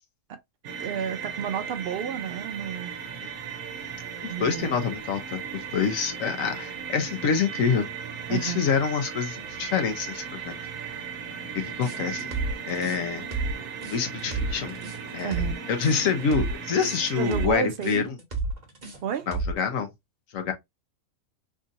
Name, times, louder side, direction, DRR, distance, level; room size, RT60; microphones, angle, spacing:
sound 1, 0.6-17.5, right 7 dB, 85° right, 1.1 m, -37 dB
voice 1, 0.8-2.9 4.3-4.8 8.3-8.7 15.2-15.6 17.1-18.1 19.0-19.3, right 8 dB, 65° right, 0.6 m, -31 dB
voice 2, 4.4-7.9 8.3-10.5 11.5-12.3 12.7-13.2 13.9-14.8 15.1-15.4 15.7-18.1 19.3-19.9 20.3-20.5, left 6 dB, 80° left, 1.2 m, -26 dB
sound 2, 11.8-19.7, right 3 dB, 35° right, 1.1 m, -31 dB
3.6 x 2.6 x 2.6 m
omnidirectional pair, 1.4 m